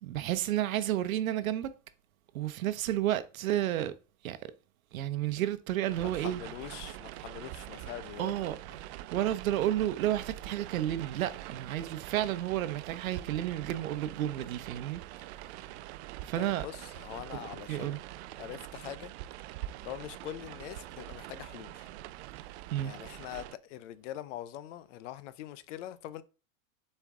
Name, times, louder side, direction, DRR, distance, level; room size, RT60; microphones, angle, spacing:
voice 1, 0.0-1.7 2.3-3.9 4.2-4.4 4.9-6.4 8.2-8.6 9.1-15.0 15.4-15.5 16.2-16.7 17.7-18.0 22.7-22.9, right 12 dB, 90° right, 0.8 m, -31 dB
voice 2, 5.9-8.5 16.4-18.0 18.4-19.1 19.8-21.9 22.8-26.2, left 12 dB, 65° left, 0.7 m, -43 dB
sound 1, 5.9-23.6, right 15 dB, 55° right, 0.5 m, -44 dB
7.1 x 4.5 x 3.6 m
supercardioid pair, 140°, 40 cm